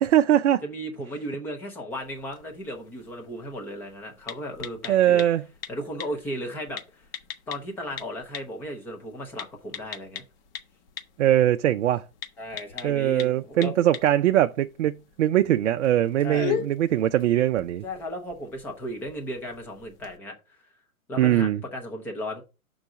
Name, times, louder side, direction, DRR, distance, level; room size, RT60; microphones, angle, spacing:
voice 1, 0.0-0.6 4.9-5.4 11.2-12.0 12.8-17.8 21.2-21.6, right 12 dB, 55° right, 0.5 m, -21 dB
voice 2, 0.6-5.2 5.7-7.0 7.5-10.2 12.4-13.7 16.2-16.5 17.8-20.6 21.1-22.4, equal, 5° left, 0.4 m, -35 dB
sound 1, 1.9-20.2, left 9 dB, 40° left, 1.0 m, -41 dB
6.1 x 3.9 x 6.0 m
figure-of-eight pair, 120°, 42 cm